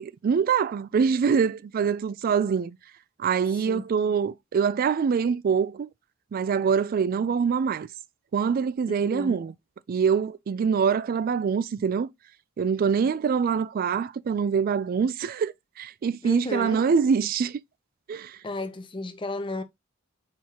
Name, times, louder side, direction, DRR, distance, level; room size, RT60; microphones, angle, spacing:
voice 1, 0.0-2.8 3.2-5.9 6.3-7.9 8.3-9.5 9.9-12.1 12.6-17.6 18.1-18.4, right 6 dB, 45° right, 0.3 m, -24 dB
voice 2, 8.9-9.4 16.2-16.8 18.4-19.6, left 2 dB, 25° left, 0.5 m, -34 dB
4.3 x 3.6 x 3.0 m
head